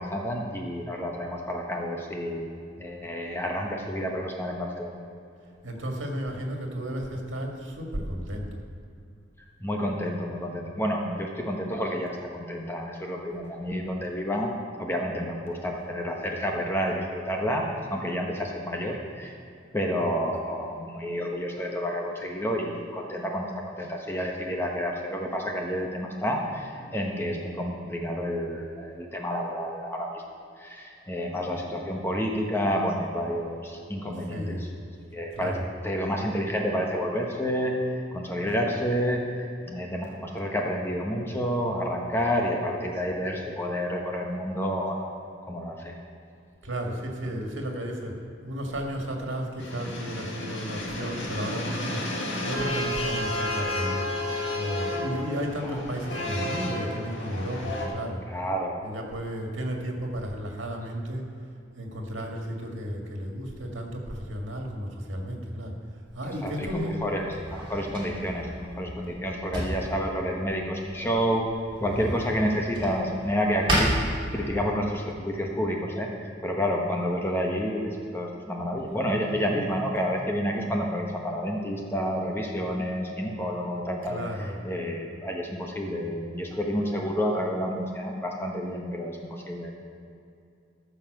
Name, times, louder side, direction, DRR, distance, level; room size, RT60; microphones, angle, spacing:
voice 1, 0.0-2.5 2.8-5.0 9.6-14.5 14.8-17.6 17.9-19.4 19.7-30.2 30.6-34.6 35.1-35.6 35.8-45.1 45.5-46.0 55.6-55.8 58.3-58.7 66.4-71.4 71.8-73.9 74.3-89.7, equal, 15° left, 0 dB, 1.0 m, -29 dB
voice 2, 5.6-8.6 34.3-34.7 35.3-35.7 46.6-52.0 52.4-54.1 54.5-58.2 58.8-61.3 61.8-65.8 66.1-67.0 71.8-72.2 84.0-84.6, equal, 80° right, 1 dB, 1.8 m, -33 dB
sound 1, 49.6-57.9, left 1 dB, 75° left, 1.9 m, -32 dB
Drawer open or close, 66.1-74.8, equal, 25° right, 2.7 m, -33 dB
13.5 x 5.6 x 6.5 m, 2.5 s
head